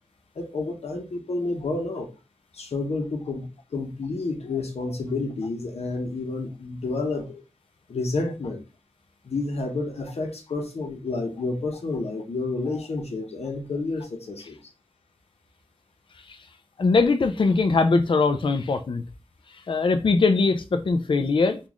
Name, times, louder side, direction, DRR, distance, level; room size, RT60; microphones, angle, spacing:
voice 1, 0.4-2.1 2.5-3.5 3.7-7.4 7.9-8.6 9.2-14.6, left 3 dB, 80° left, 0.8 m, -30 dB
voice 2, 16.8-19.0 19.7-21.6, left 4 dB, 55° left, 0.4 m, -21 dB
3.8 x 2.5 x 3.0 m
wide cardioid pair, 70°, 10 cm